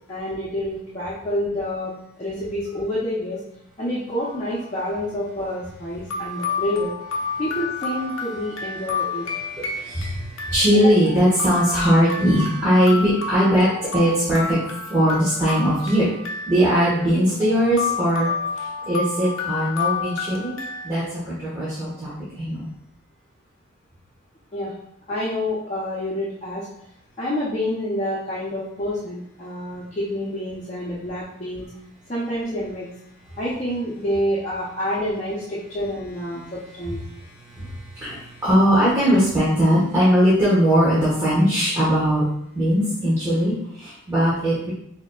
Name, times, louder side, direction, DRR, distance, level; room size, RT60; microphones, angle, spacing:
voice 1, 0.1-3.4 3.8-6.9 7.4-9.3 10.7-10.9 24.5-24.7 25.1-26.7 27.2-31.7 32.1-32.9 33.4-37.0, left 1 dB, 30° left, -8 dB, 0.8 m, -28 dB
sound 1, 4.2-4.7 5.6-5.7 6.1-20.9, left 4 dB, 75° left, 0.6 m, -30 dB
voice 2, 9.4-14.6 14.9-16.1 16.5-18.3 18.8-20.6 20.8-22.1 22.4-22.7 37.4-42.2 42.5-44.7, equal, 15° right, -11 dB, 1.4 m, -20 dB
6.0 x 2.9 x 2.4 m, 0.72 s
head